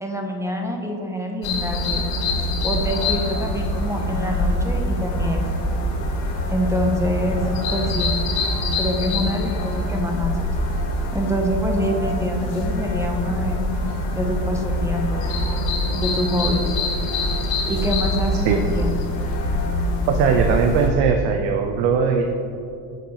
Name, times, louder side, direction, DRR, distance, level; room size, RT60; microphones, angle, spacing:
voice 1, 0.0-2.0 2.6-5.5 6.5-7.4 7.7-8.1 8.8-10.5 11.1-13.6 14.1-15.3 15.9-16.7 17.7-18.9, equal, 5° right, 2 dB, 0.4 m, -26 dB
sound 1, 1.4-20.9, left 1 dB, 70° left, 1.2 m, -24 dB
voice 2, 20.1-22.2, right 6 dB, 70° right, 4 dB, 0.6 m, -19 dB
6.6 x 6.3 x 2.8 m, 2.6 s
supercardioid pair, 110°, 46 cm